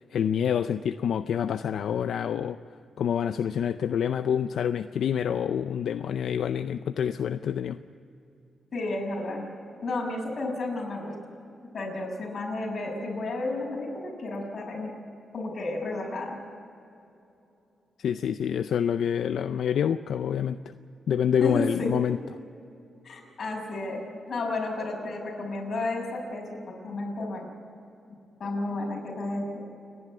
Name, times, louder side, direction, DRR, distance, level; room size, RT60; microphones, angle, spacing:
voice 1, 0.0-2.6 3.0-7.8 18.0-20.6 21.1-22.2, left 8 dB, 75° left, 10 dB, 0.5 m, -27 dB
voice 2, 8.7-9.4 9.8-11.1 11.7-15.0 15.3-16.4 21.4-21.9 23.0-24.0 24.3-26.5 26.8-27.5 28.4-29.6, left 2 dB, 50° left, -1 dB, 6.5 m, -32 dB
29.5 x 11.0 x 9.7 m, 2.7 s
cardioid pair, 120°, 0 cm